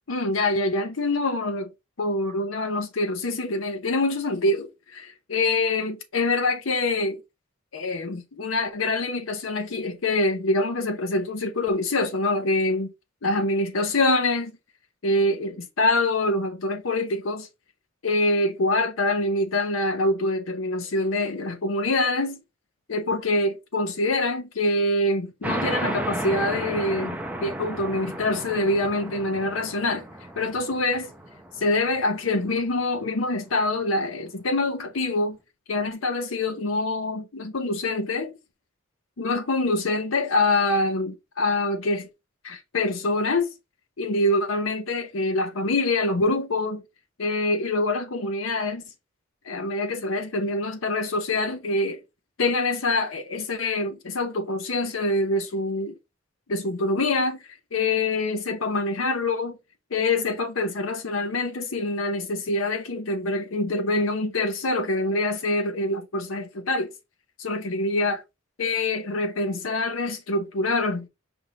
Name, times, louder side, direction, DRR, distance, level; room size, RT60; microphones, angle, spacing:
voice 1, 0.1-1.7 2.0-7.2 7.7-12.9 13.2-14.5 15.0-17.5 18.0-22.4 22.9-30.0 30.3-31.1 31.6-35.4 35.7-38.3 39.2-42.1 42.4-43.5 44.0-46.8 47.2-48.8 49.4-52.0 52.4-55.9 56.5-59.6 59.9-66.9 67.4-68.2 68.6-71.1, left 2 dB, 85° left, 0.8 m, -25 dB
sound 1, 25.4-32.6, right 1 dB, 10° right, 0.7 m, -33 dB
5.4 x 3.5 x 2.8 m
head